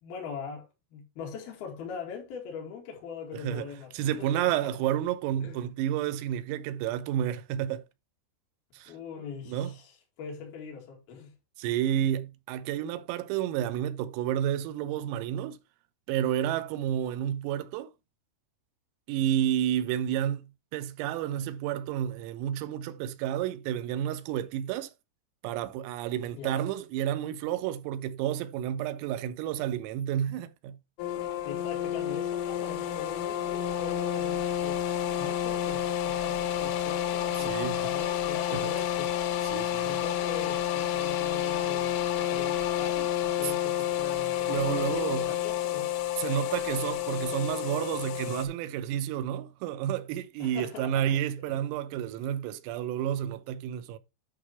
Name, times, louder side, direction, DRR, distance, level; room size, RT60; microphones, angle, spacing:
voice 1, 0.0-0.7 0.9-4.8 5.4-5.6 8.9-11.3 26.4-26.7 31.4-34.8 35.2-39.1 39.8-45.9 46.3-46.5 50.4-51.7, left 6 dB, 55° left, 3.4 m, -42 dB
voice 2, 3.3-3.7 3.9-7.9 8.7-8.9 9.5-9.7 11.6-15.6 16.1-17.9 19.1-20.5 20.7-24.9 25.4-30.8 37.5-37.8 38.5-38.7 39.5-39.9 43.4-43.5 44.5-45.3 46.2-54.0, right 11 dB, 90° right, 3.6 m, -30 dB
sound 1, 31.0-48.5, left 11 dB, 80° left, 3.5 m, -30 dB
10.5 x 4.8 x 4.3 m
omnidirectional pair, 5.9 m